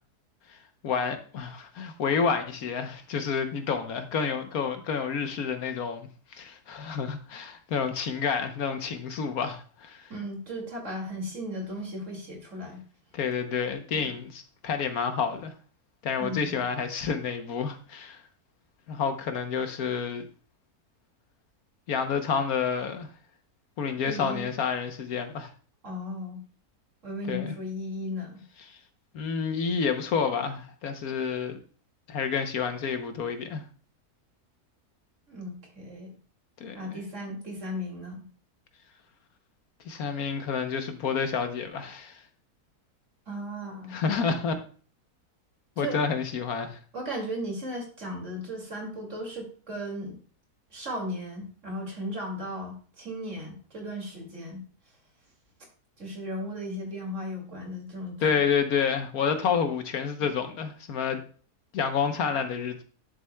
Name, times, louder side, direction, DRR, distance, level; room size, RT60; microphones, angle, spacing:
voice 1, 0.8-10.1 13.1-15.5 16.0-18.2 18.9-20.2 21.9-23.1 23.8-25.5 27.3-27.5 28.7-28.8 29.1-31.6 32.1-33.6 36.6-36.8 39.8-42.2 43.9-44.5 45.8-46.8 58.2-61.2 61.7-62.8, left 6 dB, 70° left, 1.3 m, -29 dB
voice 2, 10.1-12.8 13.9-14.2 16.2-16.6 24.0-24.6 25.8-26.4 27.0-28.4 35.3-36.2 36.7-38.3 43.3-44.0 45.8-46.0 46.9-50.2 50.7-54.6 56.0-58.4, equal, 50° right, 2.6 m, -36 dB
10.5 x 7.4 x 2.2 m
omnidirectional pair, 1.7 m